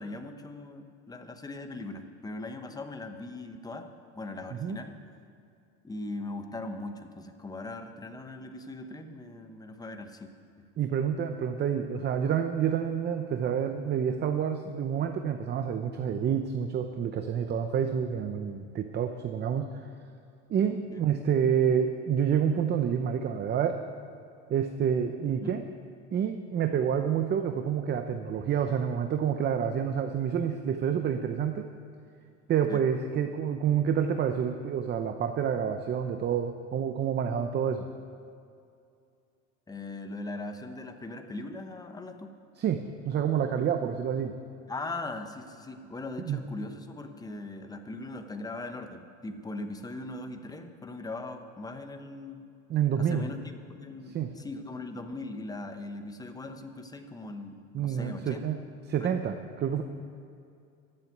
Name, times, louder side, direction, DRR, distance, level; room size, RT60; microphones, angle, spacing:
voice 1, 0.0-3.9 4.1-5.0 5.8-10.3 10.6-10.7 20.9-21.1 25.4-25.5 32.7-32.8 39.7-42.3 44.7-52.5 53.0-53.4 53.7-58.4 58.7-59.1, left 2 dB, 10° left, 6 dB, 0.9 m, -40 dB
voice 2, 10.8-19.7 20.5-23.8 24.5-25.6 26.1-31.7 32.5-37.8 42.6-44.3 46.3-46.4 52.7-53.3 54.1-54.3 57.7-58.6 58.9-59.8, right 8 dB, 25° right, 7 dB, 0.6 m, -28 dB
14.5 x 7.6 x 9.3 m, 2.5 s
supercardioid pair, 135°, 39 cm